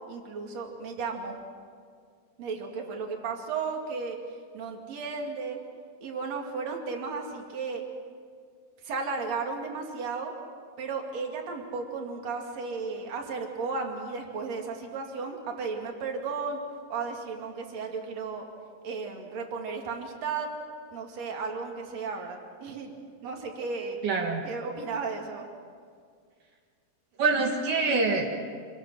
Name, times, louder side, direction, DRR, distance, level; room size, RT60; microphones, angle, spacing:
voice 1, 0.1-1.3 2.4-4.2 4.5-5.6 6.0-7.8 8.8-10.3 10.8-16.6 16.9-18.4 18.8-20.5 20.9-22.9 23.2-24.0 24.4-25.5, right 4 dB, 55° right, 2 dB, 3.4 m, -34 dB
voice 2, 24.0-24.4 27.2-28.4, right 4 dB, 75° right, 0 dB, 3.3 m, -25 dB
26.5 x 21.5 x 6.2 m, 2.1 s
omnidirectional pair, 3.7 m